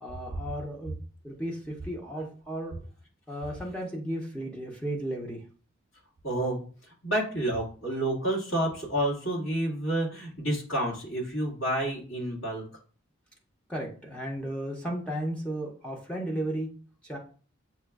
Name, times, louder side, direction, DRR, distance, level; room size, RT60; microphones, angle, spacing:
voice 1, 0.0-0.9 1.2-2.7 3.3-5.4 13.7-16.7 17.0-17.2, right 1 dB, 5° left, -1 dB, 0.5 m, -34 dB
voice 2, 6.2-12.7, right 1 dB, 70° left, -4 dB, 1.8 m, -29 dB
7.0 x 2.3 x 2.3 m, 0.40 s
head